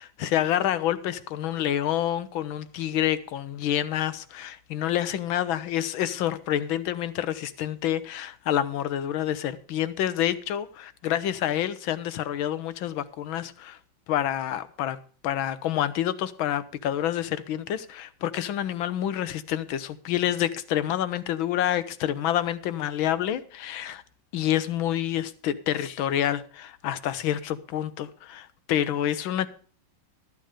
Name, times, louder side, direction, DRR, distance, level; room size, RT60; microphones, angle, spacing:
voice 1, 0.0-13.8 14.1-15.0 15.2-24.0 24.3-29.5, left 11 dB, 85° left, 1.6 m, -28 dB
13.0 x 9.0 x 5.0 m
omnidirectional pair, 2.1 m